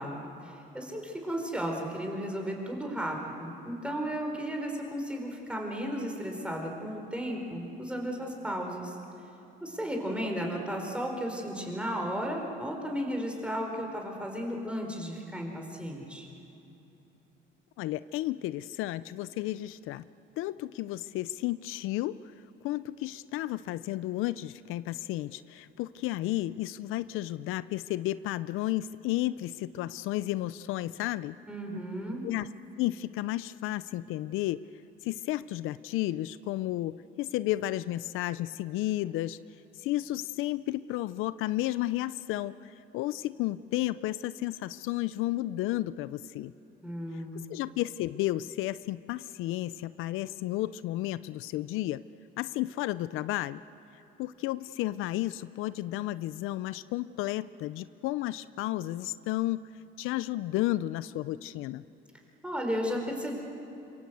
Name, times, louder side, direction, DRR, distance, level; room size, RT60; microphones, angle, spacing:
voice 1, 0.0-9.0 9.6-16.3 31.5-32.3 46.8-47.5 62.4-63.3, equal, 5° right, 1 dB, 4.6 m, -34 dB
voice 2, 17.8-20.0 20.4-22.2 22.6-31.4 32.2-32.5 32.8-34.6 35.0-39.4 39.8-46.5 47.1-47.2 47.5-52.0 52.4-53.6 54.2-59.6 60.0-61.8, left 15 dB, 80° left, 16 dB, 0.5 m, -32 dB
26.5 x 23.0 x 8.1 m, 2.8 s
cardioid pair, 105°, 21 cm